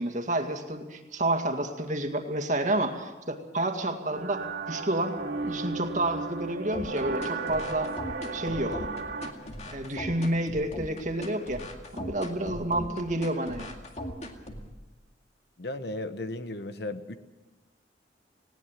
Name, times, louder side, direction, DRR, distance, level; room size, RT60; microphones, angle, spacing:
voice 1, 0.0-7.9 8.3-8.8 9.7-11.6 11.9-13.8, right 1 dB, 45° right, 5 dB, 2.1 m, -30 dB
sound 1, 4.1-9.3, right 3 dB, 75° right, 2.5 m, -35 dB
sound 2, 6.7-14.7, left 1 dB, 40° left, 2.2 m, -39 dB
voice 2, 15.6-17.2, left 2 dB, 65° left, 11 dB, 1.1 m, -35 dB
20.0 x 17.5 x 7.6 m, 1.1 s
head